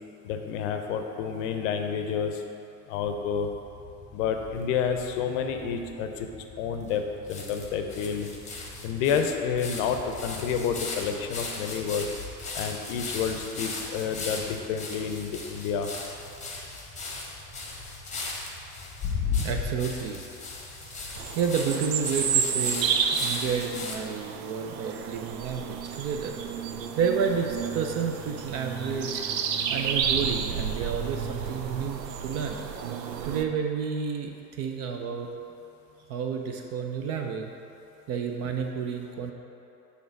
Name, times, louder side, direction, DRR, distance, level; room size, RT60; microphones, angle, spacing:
voice 1, 0.2-2.4 2.9-3.5 4.1-6.3 6.6-7.0 7.3-8.3 8.8-12.1 12.5-15.9, left 7 dB, 50° left, 5 dB, 0.7 m, -29 dB
sound 1, 3.0-21.5, left 2 dB, 10° right, 1.3 m, -50 dB
sound 2, 4.2-5.1 5.7-5.8 5.9-6.0 6.9-7.0 7.3-24.0, left 4 dB, 15° left, 1.0 m, -36 dB
voice 2, 19.4-20.2 21.0-26.3 27.0-29.2 29.7-32.6 33.2-35.3 36.1-37.5 38.1-39.3, right 6 dB, 35° right, 3 dB, 0.5 m, -30 dB
sound 3, 21.2-33.4, right 7 dB, 85° right, 0.6 m, -31 dB
7.0 x 3.4 x 5.2 m, 2.8 s
figure-of-eight pair, 85°, 49 cm